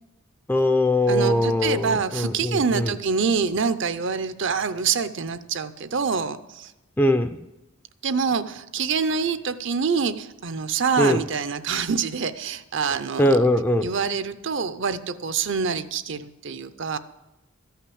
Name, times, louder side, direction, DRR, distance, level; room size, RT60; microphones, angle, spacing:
voice 1, 0.5-2.9 7.0-7.4 11.0-11.2 13.2-13.9, left 1 dB, 10° left, 7 dB, 0.4 m, -21 dB
voice 2, 1.1-6.7 8.0-13.5 13.8-17.0, right 5 dB, 55° right, 12 dB, 0.6 m, -26 dB
13.5 x 5.8 x 8.6 m, 0.99 s
head